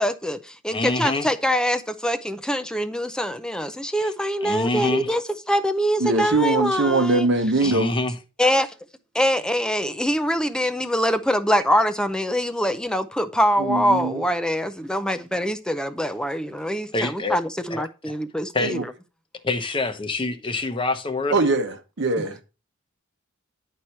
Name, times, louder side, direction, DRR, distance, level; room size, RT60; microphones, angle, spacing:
voice 1, 0.0-5.2 5.5-7.3 7.6-7.7 8.4-8.7 9.1-18.8, equal, 5° left, 0.5 m, -24 dB
voice 2, 0.7-1.3 4.0-4.1 4.4-5.1 7.6-8.1 16.9-17.4 17.7-18.1 18.5-18.8 19.4-21.4, left 2 dB, 25° left, 0.9 m, -26 dB
voice 3, 6.0-7.9 13.6-14.2 18.6-18.8 21.3-22.4, right 3 dB, 55° right, 0.9 m, -22 dB
10.0 x 4.7 x 4.3 m
head